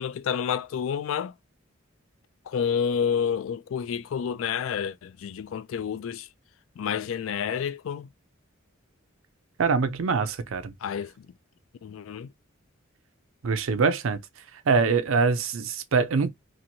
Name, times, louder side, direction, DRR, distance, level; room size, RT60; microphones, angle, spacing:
voice 1, 0.0-1.3 2.5-6.3 6.8-8.1 10.8-11.1 11.8-12.3, left 7 dB, 70° left, 0.3 m, -29 dB
voice 2, 9.6-10.7 13.4-14.2 14.7-16.3, right 4 dB, 70° right, 0.5 m, -24 dB
2.9 x 2.5 x 2.6 m
head